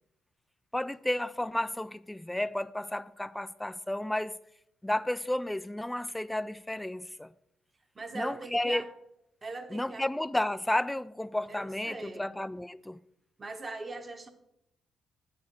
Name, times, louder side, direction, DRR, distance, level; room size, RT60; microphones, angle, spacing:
voice 1, 0.7-4.4 4.8-7.3 8.1-8.8 9.7-13.0, left 1 dB, 10° left, 0.3 m, -32 dB
voice 2, 7.9-8.9 9.4-10.1 11.5-12.3 13.4-14.3, right 3 dB, 30° right, 1.0 m, -40 dB
8.4 x 4.2 x 6.4 m
cardioid pair, 90°, 0 cm